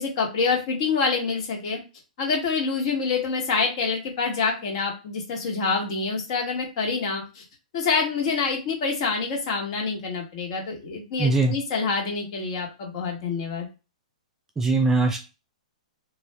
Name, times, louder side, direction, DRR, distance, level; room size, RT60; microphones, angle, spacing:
voice 1, 0.0-1.8 2.2-7.4 7.7-13.7, left 4 dB, 45° left, 1 dB, 1.3 m, -26 dB
voice 2, 11.2-11.6 14.6-15.2, right 3 dB, 10° right, 4 dB, 0.3 m, -21 dB
2.5 x 2.4 x 3.2 m, 0.30 s
hypercardioid pair, 145°, 4 cm